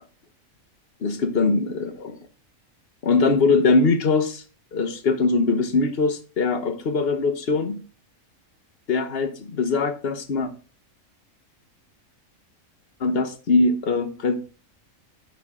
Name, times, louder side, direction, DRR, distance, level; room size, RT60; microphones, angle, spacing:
voice 1, 1.0-2.2 3.0-4.4 4.7-7.8 8.9-10.5 13.0-14.4, left 3 dB, 50° left, 1.1 m, -22 dB
9.3 x 5.6 x 3.6 m
omnidirectional pair, 1.4 m